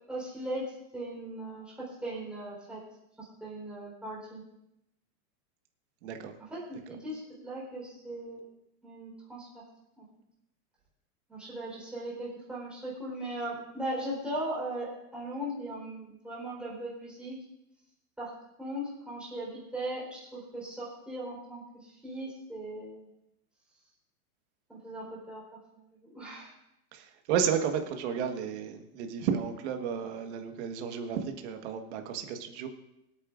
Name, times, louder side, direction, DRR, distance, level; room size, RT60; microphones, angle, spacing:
voice 1, 0.1-2.8 3.2-4.4 6.5-8.4 8.8-9.6 10.0-10.1 11.3-17.3 18.2-23.1 24.7-25.9 26.1-26.5, right 1 dB, ahead, -7 dB, 4.0 m, -38 dB
voice 2, 6.0-6.3 26.9-32.7, right 7 dB, 45° right, 5 dB, 1.5 m, -32 dB
23.5 x 8.9 x 2.6 m, 0.83 s
supercardioid pair, 160°, 45 cm